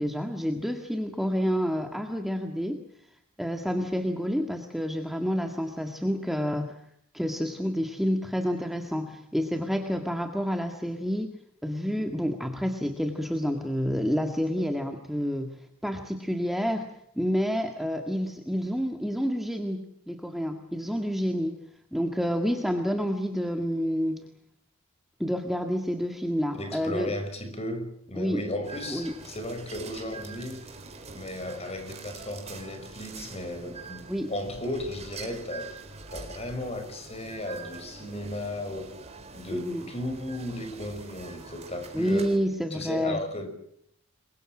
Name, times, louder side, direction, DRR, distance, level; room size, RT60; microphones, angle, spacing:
voice 1, 0.0-2.8 3.4-6.7 7.1-11.3 11.6-15.6 15.8-16.9 17.2-21.6 21.9-24.3 25.2-27.1 28.2-28.4 28.9-29.1 34.1-34.3 39.5-39.9 41.9-43.2, equal, ahead, 1.9 m, -29 dB
voice 2, 26.5-30.7 31.1-35.8 36.1-39.0 39.3-42.3 42.7-43.5, left 1 dB, 30° left, 5.5 m, -35 dB
sound 1, 28.6-42.4, right 4 dB, 30° right, 4.2 m, -44 dB
29.0 x 23.5 x 6.3 m
head